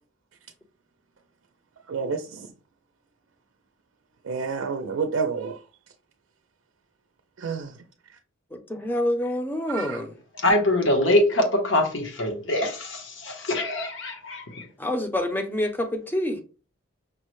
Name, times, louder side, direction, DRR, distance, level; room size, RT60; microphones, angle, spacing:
voice 1, 1.9-2.5 4.2-5.6 7.4-7.8 9.7-10.0, right 5 dB, 85° right, 0.4 m, -29 dB
voice 2, 8.5-10.1 14.8-16.4, left 1 dB, 10° left, 0.5 m, -27 dB
voice 3, 10.4-14.6, left 1 dB, 70° left, 0.9 m, -23 dB
5.4 x 2.1 x 3.0 m
head